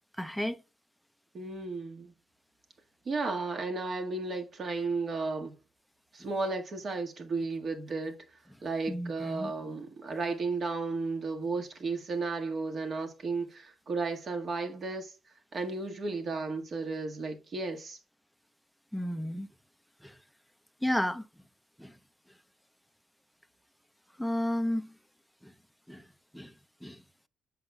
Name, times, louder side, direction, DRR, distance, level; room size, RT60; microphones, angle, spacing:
voice 1, 0.2-0.6 8.9-9.5 18.9-19.5 20.0-20.1 20.8-21.2 21.8-21.9 24.2-24.9 25.4-25.5 25.9-26.0 26.3-26.5 26.8-27.0, left 1 dB, ahead, 0.6 m, -32 dB
voice 2, 1.3-2.1 3.0-5.5 6.1-8.2 8.6-15.1 15.5-18.0, right 3 dB, 50° right, 1.7 m, -34 dB
7.8 x 6.2 x 2.3 m
cardioid pair, 90°, 0 cm